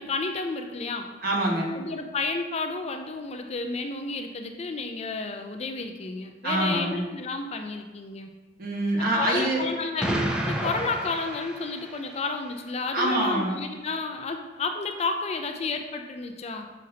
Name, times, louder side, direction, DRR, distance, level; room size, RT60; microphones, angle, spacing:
voice 1, 0.0-1.1 1.7-8.3 9.2-10.1 10.5-16.7, left 3 dB, 35° left, 5 dB, 0.4 m, -31 dB
voice 2, 1.2-1.7 6.4-7.0 8.6-9.6 12.9-13.6, right 1 dB, 55° right, -3 dB, 1.4 m, -25 dB
Explosion, 10.0-12.2, right 1 dB, 5° right, 0.6 m, -30 dB
6.5 x 5.3 x 2.8 m, 1.2 s
head